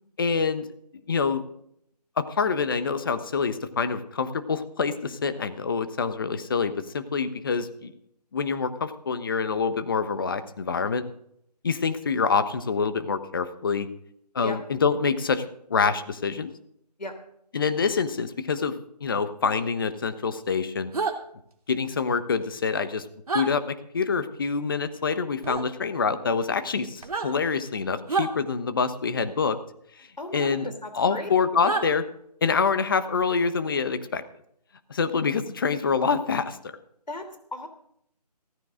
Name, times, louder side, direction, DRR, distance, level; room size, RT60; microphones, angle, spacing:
voice 1, 0.2-0.7 1.1-1.4 2.2-7.9 8.3-11.0 11.6-13.9 14.3-15.4 15.7-16.5 17.5-20.9 21.7-23.1 23.3-29.6 30.0-30.1 30.3-30.7 30.9-32.1 32.4-34.2 34.9-36.6, left 5 dB, 30° left, 11 dB, 1.1 m, -26 dB
sound 1, 20.9-21.1 23.3-23.5 25.4-25.6 27.0-27.3 28.1-28.3 30.4-30.5 31.6-31.9, right 4 dB, 60° right, 3.1 m, -27 dB
voice 2, 30.2-31.3 37.1-37.7, left 1 dB, 90° left, 8 dB, 3.3 m, -36 dB
16.5 x 14.5 x 3.8 m, 0.70 s
figure-of-eight pair, 165°, 21 cm